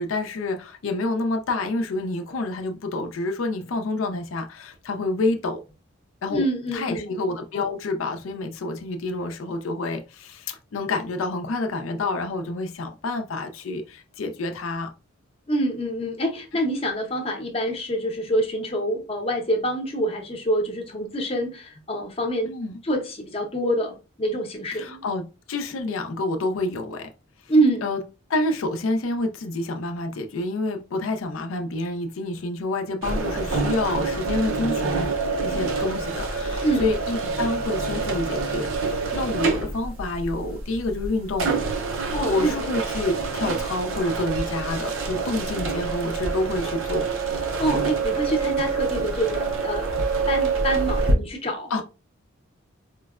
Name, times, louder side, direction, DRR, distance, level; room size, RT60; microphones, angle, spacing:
voice 1, 0.0-5.6 6.2-6.4 6.7-14.9 22.4-22.8 24.7-27.1 27.8-28.0 28.3-35.1 35.4-41.5 42.3-47.1 51.7-51.8, left 2 dB, 80° left, 0.5 m, -28 dB
voice 2, 6.3-7.1 15.5-22.5 22.8-25.0 27.5-27.9 36.6-36.9 42.1-42.7 47.6-49.9 50.3-51.8, right 1 dB, 30° left, 0.6 m, -26 dB
sound 1, 33.0-51.1, right 4 dB, 75° right, 0.5 m, -26 dB
4.4 x 2.1 x 2.3 m
head